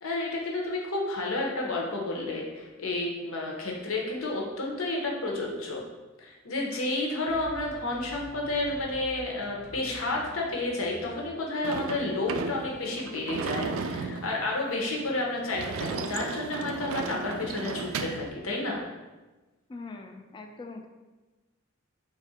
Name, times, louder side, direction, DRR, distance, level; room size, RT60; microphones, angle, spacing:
voice 1, 0.0-5.8 6.2-18.8, left 2 dB, 80° left, -1 dB, 0.8 m, -31 dB
sound 1, 7.3-11.3, left 1 dB, 45° left, 0.7 m, -48 dB
Sliding door / Slam, 11.6-18.3, right 5 dB, 75° right, 0.3 m, -34 dB
voice 2, 19.7-20.9, left 3 dB, 20° left, 4 dB, 0.3 m, -42 dB
3.5 x 2.5 x 4.1 m, 1.2 s
head